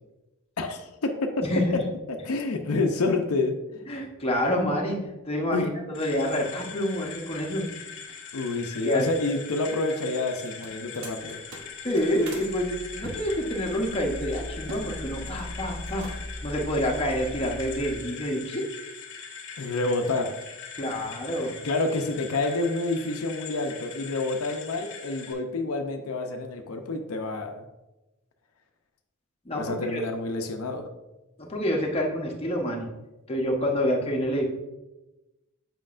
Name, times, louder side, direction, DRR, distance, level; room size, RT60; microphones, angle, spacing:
voice 1, 0.6-1.5 2.1-3.5 5.5-5.7 8.3-11.4 19.6-20.3 21.6-27.6 29.5-30.9, left 2 dB, 85° left, 4 dB, 0.6 m, -28 dB
voice 2, 1.5-1.8 3.9-7.6 8.8-9.1 11.8-16.1 16.4-18.6 20.8-21.5 29.4-30.0 31.4-32.9 33.3-34.4, equal, 30° left, 0 dB, 0.9 m, -27 dB
sound 1, 5.9-25.3, left 6 dB, 60° left, 1.0 m, -42 dB
sound 2, 10.4-12.5 13.0-14.9 15.1-15.5 15.8-16.4, right 2 dB, 60° right, 0.9 m, -44 dB
sound 3, 11.8-17.9, left 1 dB, 10° right, 0.9 m, -40 dB
7.5 x 5.2 x 2.5 m, 1.0 s
head